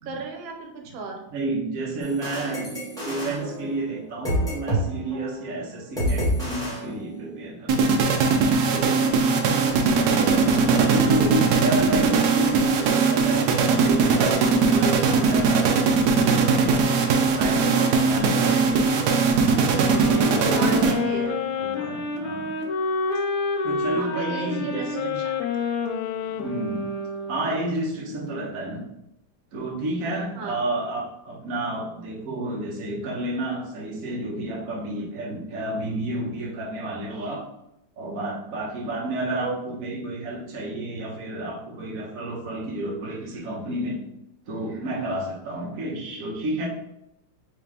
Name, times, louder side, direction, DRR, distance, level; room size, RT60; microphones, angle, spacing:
voice 1, 0.0-1.2 9.6-10.1 20.5-21.3 23.9-25.5 26.3-26.5 30.3-30.6 39.4-39.6, right 5 dB, 90° right, 2 dB, 1.5 m, -35 dB
voice 2, 1.3-8.0 8.6-9.1 9.5-15.7 16.2-18.8 19.3-21.0 21.6-22.5 23.6-25.2 26.4-26.9 27.3-28.8 29.5-37.4 38.0-44.0 44.5-46.7, right 1 dB, 50° right, -4 dB, 1.3 m, -31 dB
sound 1, 2.0-4.9 5.1-5.4 6.0-7.5, equal, ahead, 1.2 m, -29 dB
sound 2, 7.7-21.3, right 4 dB, 70° right, 1.0 m, -20 dB
sound 3, 19.9-27.8, left 4 dB, 85° left, 1.4 m, -28 dB
4.9 x 2.8 x 3.4 m, 0.84 s
omnidirectional pair, 2.1 m